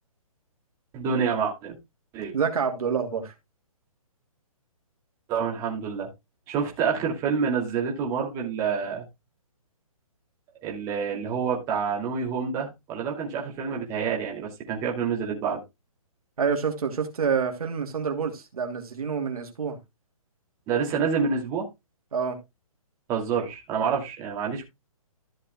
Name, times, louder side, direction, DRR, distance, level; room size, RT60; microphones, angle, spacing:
voice 1, 0.9-1.8 2.1-2.3 5.3-6.1 6.5-9.0 10.6-15.6 20.7-21.7 23.1-24.6, right 6 dB, 15° right, 2.5 m, -27 dB
voice 2, 2.3-3.3 16.4-19.8 22.1-22.4, right 6 dB, 75° right, 2.8 m, -27 dB
14.0 x 6.9 x 2.3 m
hypercardioid pair, 165°, 19 cm